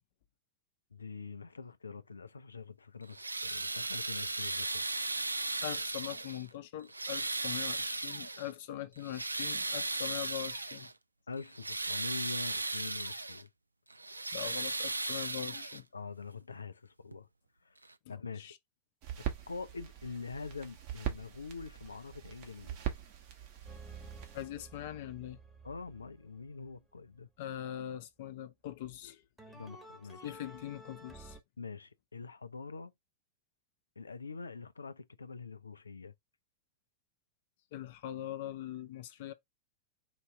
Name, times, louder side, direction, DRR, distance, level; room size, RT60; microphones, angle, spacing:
voice 1, 0.9-4.8 11.3-13.5 15.9-17.3 17.6-17.8 18.1-18.5 19.2-22.8 25.6-27.3 29.5-30.3 31.6-32.9 34.0-36.1, left 4 dB, 75° left, 0.5 m, -45 dB
sound 1, 3.0-6.5 6.9-8.5 9.0-10.9 11.4-13.4 13.9-16.0 17.1-17.2 17.8-17.9, right 2 dB, 80° right, 0.4 m, -36 dB
voice 2, 5.6-10.9 14.3-15.9 18.1-18.6 24.3-25.4 27.4-29.5 30.2-31.4 37.7-39.3, left 11 dB, 55° left, 0.8 m, -42 dB
sound 2, 19.0-24.4, right 10 dB, 45° right, 1.4 m, -41 dB
sound 3, 23.7-27.1 29.4-31.4, right 2 dB, 5° right, 1.3 m, -52 dB
4.9 x 2.7 x 3.3 m
figure-of-eight pair, 90°, 0 cm